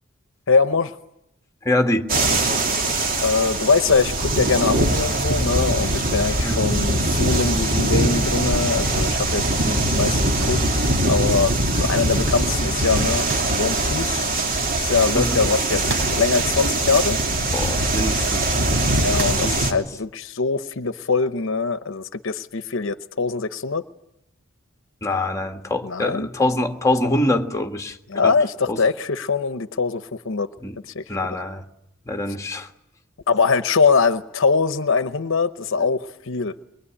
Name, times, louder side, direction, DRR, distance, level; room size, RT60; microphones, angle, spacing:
voice 1, 0.5-0.9 3.2-14.3 14.8-17.2 19.0-23.8 25.8-26.3 28.1-30.5 30.9-31.0 33.3-36.5, left 4 dB, 65° left, 0.9 m, -22 dB
voice 2, 1.6-2.1 6.4-6.7 15.2-15.4 17.5-18.5 19.4-19.6 25.0-28.0 28.7-28.8 30.6-30.8 31.1-31.6 32.1-32.7, left 1 dB, 15° left, 1.6 m, -24 dB
sound 1, 2.1-19.7, right 2 dB, 45° right, 2.8 m, -22 dB
sound 2, 13.2-13.6 15.8-16.4 17.1-17.2 19.1-19.5, right 3 dB, 65° right, 6.3 m, -31 dB
23.5 x 22.0 x 10.0 m
head